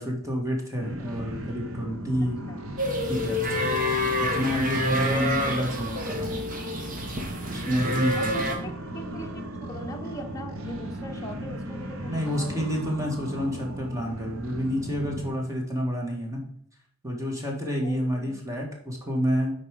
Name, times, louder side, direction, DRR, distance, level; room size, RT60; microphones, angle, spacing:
voice 1, 0.0-2.4 3.1-3.7 4.2-6.4 7.4-8.5 12.1-16.5 17.0-19.5, equal, 15° right, 0 dB, 1.7 m, -29 dB
sound 1, 0.8-15.3, right 1 dB, 65° right, 1.1 m, -37 dB
sound 2, 2.8-8.5, left 1 dB, 40° right, 1.4 m, -28 dB
voice 2, 8.1-12.6 17.8-18.4, equal, 15° left, 1 dB, 1.0 m, -40 dB
8.1 x 4.7 x 5.1 m, 0.67 s
head